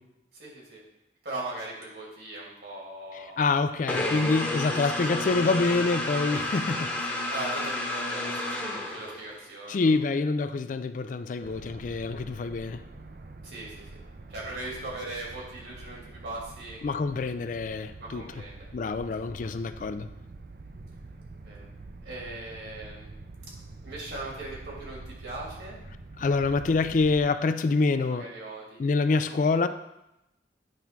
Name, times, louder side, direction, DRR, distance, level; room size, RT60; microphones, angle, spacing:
voice 1, 0.3-0.8 1.2-3.4 4.4-5.1 7.1-9.9 13.4-14.0 14.3-16.8 18.0-18.7 19.0-19.1 19.4-19.5 21.4-21.7 22.0-23.1 23.8-25.8 28.1-28.8 29.3-29.4, right 2 dB, 70° right, -4 dB, 2.6 m, -39 dB
voice 2, 3.1-6.9 9.7-12.8 16.8-18.2 18.7-20.1 26.2-28.3 28.8-29.7, left 3 dB, 45° left, 11 dB, 0.3 m, -26 dB
sound 1, 3.9-9.5, left 1 dB, 10° left, 0.9 m, -31 dB
sound 2, 11.4-27.3, right 2 dB, 50° right, 0.5 m, -46 dB
9.1 x 3.5 x 5.9 m, 0.89 s
head